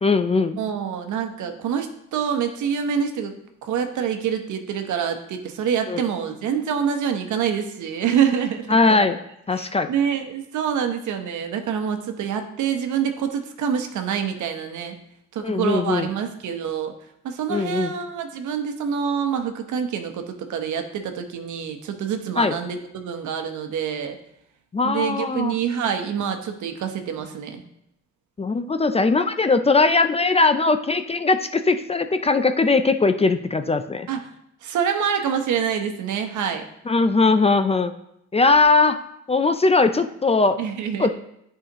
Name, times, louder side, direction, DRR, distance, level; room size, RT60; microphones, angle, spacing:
voice 1, 0.0-0.6 5.9-6.0 8.7-9.2 9.5-9.9 15.4-16.1 17.5-17.9 22.4-22.5 24.7-25.5 28.4-34.1 36.9-37.9 38.3-39.0 39.3-40.6 41.0-41.1, left 3 dB, 20° left, 9 dB, 0.4 m, -20 dB
voice 2, 0.6-3.3 3.6-9.1 9.5-14.9 15.3-16.9 17.2-24.2 24.8-27.6 34.1-34.3 34.6-36.6 40.6-41.1, right 7 dB, 75° right, 6 dB, 1.0 m, -26 dB
10.0 x 4.9 x 3.0 m, 0.78 s
cardioid pair, 90°, 30 cm